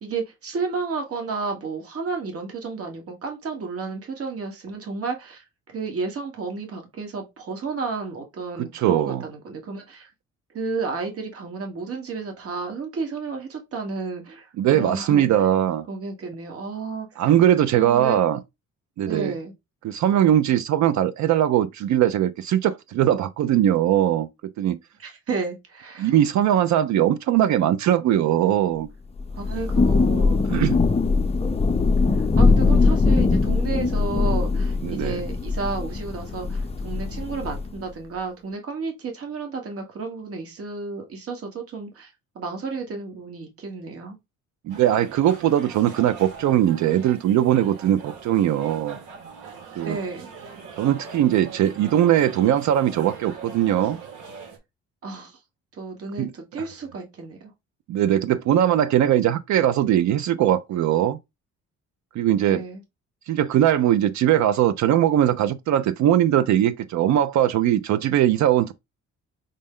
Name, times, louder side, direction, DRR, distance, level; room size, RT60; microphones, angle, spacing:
voice 1, 0.0-5.4 5.7-10.1 10.5-15.3 15.9-17.2 17.7-18.2 19.0-19.5 25.0-26.1 29.3-30.6 32.1-44.2 49.8-50.3 55.0-55.4 55.7-57.5 62.4-62.8, right 4 dB, 50° right, 1.3 m, -32 dB
voice 2, 8.6-9.2 14.6-15.9 17.2-18.4 19.0-19.3 19.8-24.3 24.6-24.8 26.0-28.9 30.5-30.8 34.8-35.2 44.6-49.0 49.8-50.0 50.8-54.0 56.2-56.6 57.9-61.2 62.1-62.6 63.3-68.7, right 11 dB, 65° right, 0.5 m, -20 dB
Thunder / Rain, 29.2-37.8, left 3 dB, 20° left, 0.5 m, -21 dB
sound 1, 44.7-54.6, right 5 dB, 90° right, 1.1 m, -41 dB
5.3 x 2.1 x 3.6 m
cardioid pair, 90°, 30 cm